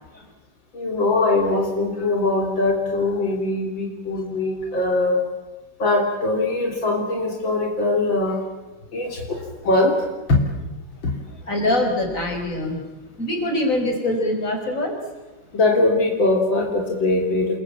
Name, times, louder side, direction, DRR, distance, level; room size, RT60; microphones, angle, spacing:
voice 1, 0.7-5.2 5.8-8.4 8.9-10.4 11.0-11.1 15.5-17.6, left 2 dB, 80° left, 1 dB, 4.0 m, -21 dB
voice 2, 11.5-12.8 13.2-15.0, left 1 dB, 40° left, 3 dB, 5.6 m, -23 dB
28.0 x 22.0 x 8.8 m, 1.1 s
omnidirectional pair, 2.1 m